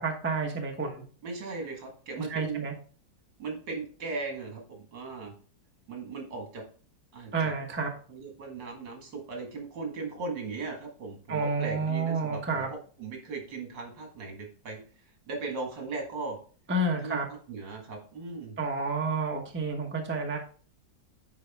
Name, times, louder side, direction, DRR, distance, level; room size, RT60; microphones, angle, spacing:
voice 1, 0.0-1.0 2.2-2.7 7.3-7.9 11.3-12.7 16.7-17.3 18.6-20.4, right 3 dB, 10° right, 2 dB, 0.8 m, -30 dB
voice 2, 1.2-2.7 3.4-5.3 5.9-6.6 7.1-7.5 8.1-14.8 15.3-16.4 17.0-17.2 17.5-18.6, right 4 dB, 70° right, 2 dB, 2.4 m, -38 dB
9.6 x 4.1 x 3.5 m, 0.41 s
omnidirectional pair, 2.0 m